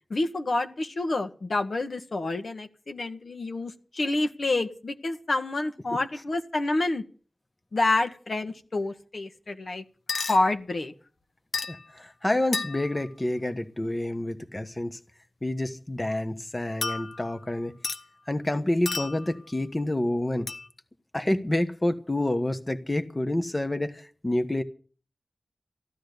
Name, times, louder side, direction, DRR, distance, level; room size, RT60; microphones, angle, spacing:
voice 1, 0.1-7.0 7.7-9.8 10.1-10.9, left 2 dB, 70° left, 1.5 m, -28 dB
sound 1, 10.1-10.4 11.5-11.9 12.5-13.0 16.8-17.4 17.8-18.0 18.9-19.3 20.5-20.7, left 4 dB, 90° left, 1.0 m, -32 dB
voice 2, 11.7-15.0 15.4-17.7 18.3-20.5 21.1-24.6, left 1 dB, 25° left, 1.3 m, -28 dB
14.5 x 12.5 x 6.7 m
wide cardioid pair, 80°, 0 cm